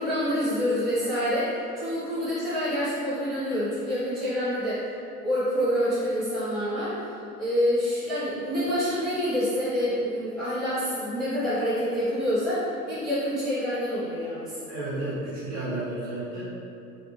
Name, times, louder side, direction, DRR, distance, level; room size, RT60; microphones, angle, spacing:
voice 1, 0.0-4.8 5.2-6.9 7.4-14.6, equal, ahead, -14 dB, 0.6 m, -27 dB
voice 2, 14.7-16.4, right 2 dB, 35° right, -9 dB, 1.0 m, -32 dB
2.5 x 2.2 x 2.8 m, 2.6 s
figure-of-eight pair, 85°, 45 cm